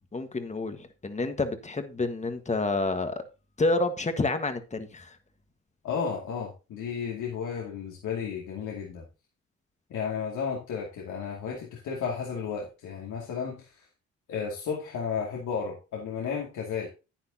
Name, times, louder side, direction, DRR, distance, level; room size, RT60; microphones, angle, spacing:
voice 1, 0.1-3.2 3.6-5.2, left 2 dB, 25° left, 1.5 m, -29 dB
voice 2, 5.8-9.1 9.9-13.8 14.3-16.9, left 6 dB, 80° left, 2.5 m, -33 dB
10.5 x 9.6 x 2.8 m
cardioid pair, 90°, 30 cm